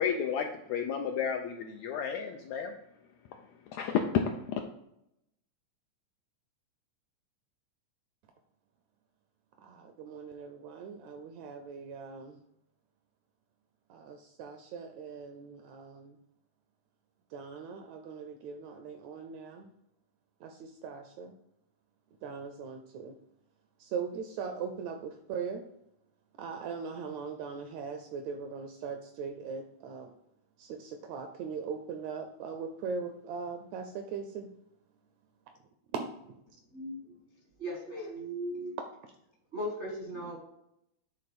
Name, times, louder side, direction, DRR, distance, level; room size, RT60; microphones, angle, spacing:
voice 1, 0.0-2.7 3.7-4.0 4.5-4.6, left 7 dB, 85° left, 1.6 m, -32 dB
voice 2, 9.6-12.4 13.9-16.2 17.3-19.7 20.4-21.4 22.2-23.2 23.8-25.6 26.4-30.1 30.6-34.5 36.0-36.3, right 5 dB, 80° right, 1.6 m, -40 dB
voice 3, 36.7-37.2 37.6-38.8 39.5-40.4, equal, 50° right, 0.8 m, -37 dB
8.6 x 3.6 x 4.2 m
omnidirectional pair, 3.6 m